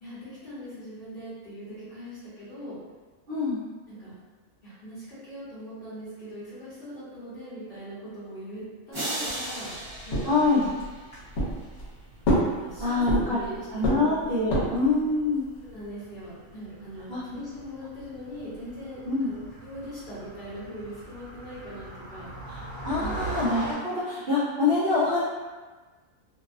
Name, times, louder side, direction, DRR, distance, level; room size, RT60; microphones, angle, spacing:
voice 1, 0.0-2.8 3.9-4.2 4.6-9.7 10.1-10.6 12.3-14.8 15.6-22.3 22.9-23.2, equal, 45° left, -11 dB, 1.0 m, -41 dB
voice 2, 3.3-3.6 10.2-10.6 12.8-13.4 13.7-15.4 17.1-17.2 19.1-19.3 22.5-25.2, left 3 dB, 60° right, -11 dB, 0.6 m, -25 dB
sound 1, 8.9-11.3, right 1 dB, 25° right, 0.9 m, -36 dB
sound 2, 9.3-23.7, right 1 dB, 60° left, 1.3 m, -43 dB
sound 3, 10.1-10.9 11.3-11.9 12.2-13.5 13.8-14.9, equal, 85° left, 1.1 m, -26 dB
2.7 x 2.0 x 2.4 m, 1.3 s
omnidirectional pair, 1.5 m